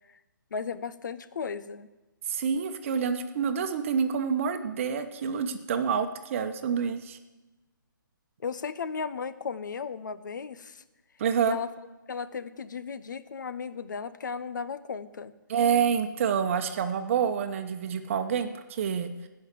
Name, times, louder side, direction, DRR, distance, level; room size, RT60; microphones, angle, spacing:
voice 1, 0.5-1.9 8.4-10.8 11.4-11.7 12.1-15.3, left 6 dB, 65° left, 14 dB, 0.8 m, -35 dB
voice 2, 2.3-7.2 11.2-11.6 15.5-19.1, right 7 dB, 40° right, 8 dB, 1.0 m, -27 dB
15.5 x 5.8 x 7.5 m, 1.1 s
hypercardioid pair, 150°, 11 cm